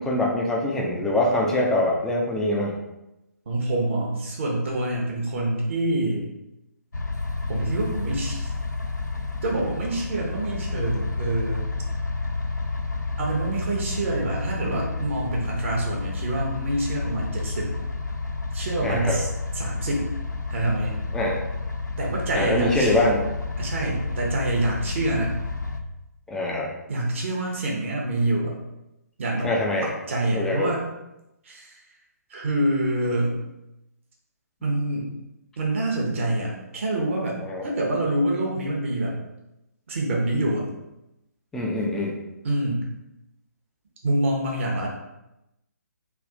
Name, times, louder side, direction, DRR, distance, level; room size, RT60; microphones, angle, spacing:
voice 1, 0.0-2.7 18.8-19.2 21.1-21.4 22.4-23.2 26.3-26.7 29.4-29.9 30.3-30.7 37.4-37.7 41.5-42.2, left 1 dB, 5° left, -2 dB, 0.4 m, -24 dB
voice 2, 3.5-6.3 7.5-8.5 9.4-11.7 13.2-17.7 18.5-19.3 19.5-20.1 20.5-21.0 22.0-23.0 23.6-25.4 26.9-28.6 29.2-29.5 29.8-30.9 31.4-31.8 32.3-33.4 34.6-35.1 35.6-39.2 39.9-40.7 42.4-42.8 44.0-44.9, right 1 dB, 45° right, -1 dB, 0.9 m, -26 dB
sound 1, 6.9-25.8, left 3 dB, 85° left, 0.4 m, -30 dB
3.4 x 2.4 x 3.6 m, 0.91 s
figure-of-eight pair, 135°, 9 cm